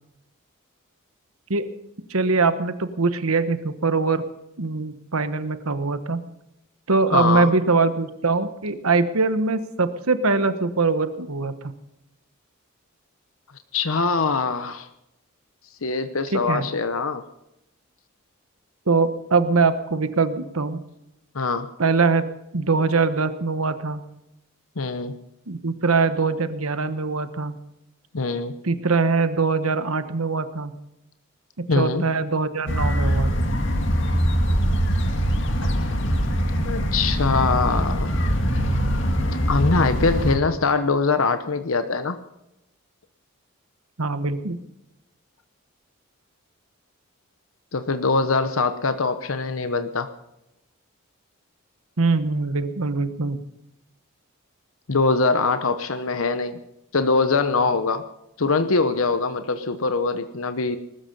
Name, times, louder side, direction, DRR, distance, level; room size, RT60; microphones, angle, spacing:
voice 1, 2.1-4.2 4.6-6.2 6.9-11.7 16.3-16.7 18.9-20.8 21.8-24.0 25.5-27.5 28.6-30.7 31.6-33.3 44.0-44.6 52.0-53.4, right 4 dB, 85° right, 11 dB, 1.3 m, -22 dB
voice 2, 7.1-7.5 13.7-14.9 15.8-17.2 21.3-21.7 24.8-25.1 28.1-28.5 31.7-32.0 36.6-38.1 39.5-42.2 47.7-50.1 54.9-56.6 56.9-58.0 58.4-60.8, left 4 dB, 75° left, 10 dB, 0.9 m, -23 dB
sound 1, 32.7-40.4, equal, 60° left, 2.0 m, -22 dB
20.0 x 13.0 x 5.5 m, 0.87 s
head